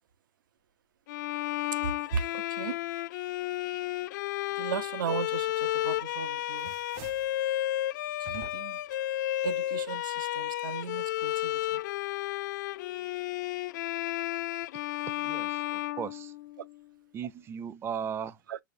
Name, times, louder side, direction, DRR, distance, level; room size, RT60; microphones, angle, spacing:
Bowed string instrument, 1.1-16.8, left 15 dB, 60° left, 0.4 m, -32 dB
voice 1, 1.7-2.8 4.6-6.8 8.2-8.8 9.4-11.8 18.5-18.6, right 7 dB, 75° right, 0.7 m, -36 dB
sound 1, 5.7-6.1 6.4-7.4 8.2-8.9, right 8 dB, 50° right, 1.2 m, -48 dB
voice 2, 15.2-16.3 17.1-18.4, right 8 dB, 20° right, 0.5 m, -37 dB
6.2 x 3.1 x 2.5 m
hypercardioid pair, 110°, 11 cm